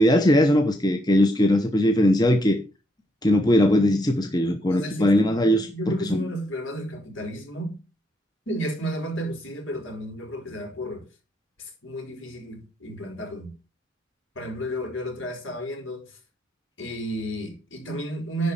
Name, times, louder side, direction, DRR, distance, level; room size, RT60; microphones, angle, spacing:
voice 1, 0.0-2.6 3.2-6.0, left 1 dB, 20° left, 0.9 m, -20 dB
voice 2, 4.7-7.8 8.5-11.1 11.6-13.5 14.3-16.2 16.8-18.5, equal, 70° left, 4.2 m, -32 dB
10.5 x 4.1 x 7.2 m
head